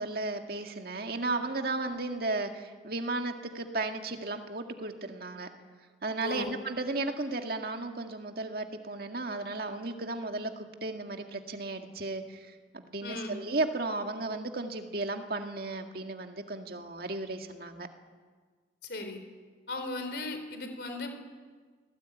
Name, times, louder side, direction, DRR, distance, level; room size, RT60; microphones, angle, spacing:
voice 1, 0.0-5.5 6.0-17.9, right 2 dB, 60° right, 5 dB, 1.9 m, -34 dB
voice 2, 6.2-6.6 13.0-13.4 18.8-19.2 19.7-21.2, left 2 dB, 70° left, 7 dB, 4.0 m, -37 dB
25.0 x 17.5 x 9.1 m, 1.5 s
head